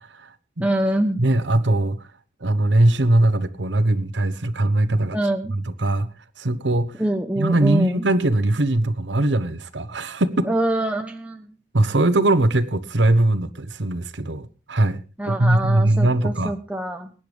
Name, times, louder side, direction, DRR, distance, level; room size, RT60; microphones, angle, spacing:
voice 1, 0.0-0.7 1.2-2.1 2.4-5.2 5.5-6.1 6.4-6.9 7.4-10.5 11.7-16.5, right 1 dB, 80° right, 1.1 m, -21 dB
voice 2, 0.6-1.2 5.1-5.5 7.0-8.0 10.4-11.5 15.2-17.1, right 1 dB, 5° right, 0.9 m, -25 dB
22.0 x 10.0 x 3.5 m
head